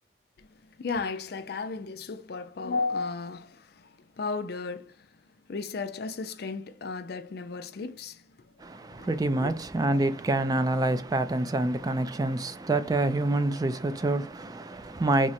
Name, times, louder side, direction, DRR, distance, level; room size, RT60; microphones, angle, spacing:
voice 1, 0.4-5.2 5.5-8.7 8.9-9.5, left 4 dB, 60° left, 0.5 m, -35 dB
voice 2, 8.6-15.3, right 2 dB, 20° right, 0.3 m, -27 dB
3.7 x 2.1 x 4.2 m
head